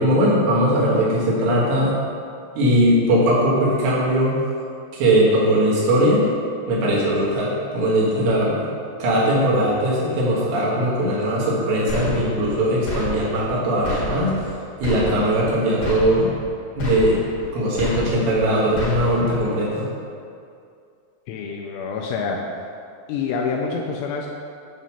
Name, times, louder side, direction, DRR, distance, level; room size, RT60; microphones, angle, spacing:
voice 1, 0.0-2.0 2.6-4.4 4.9-6.2 6.7-8.7 9.0-14.3 14.8-16.3 16.8-17.2 17.5-19.9, right 1 dB, 75° right, -7 dB, 3.6 m, -19 dB
sound 1, 11.9-12.6 12.9-13.6 13.8-14.5 14.8-15.5 15.8-16.5 16.8-17.5 17.8-18.5 18.8-19.4, left 1 dB, 60° left, 2.4 m, -30 dB
voice 2, 21.3-22.4 23.1-24.3, left 5 dB, 85° left, 0 dB, 2.5 m, -26 dB
8.9 x 3.0 x 5.5 m, 2.4 s
omnidirectional pair, 5.2 m